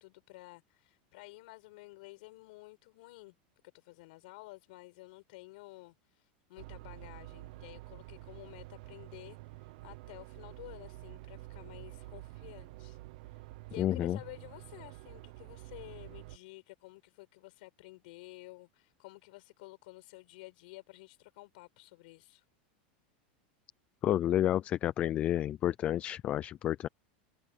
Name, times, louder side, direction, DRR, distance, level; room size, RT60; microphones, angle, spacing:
voice 1, 0.0-3.3 3.7-13.0 13.3-13.4 13.7-22.4, left 22 dB, 60° left, 5.7 m, -52 dB
sound 1, 6.6-16.4, right 19 dB, 55° right, 0.7 m, -49 dB
voice 2, 13.8-14.2 24.0-26.9, left 12 dB, 25° left, 0.4 m, -30 dB
supercardioid pair, 165°, 5 cm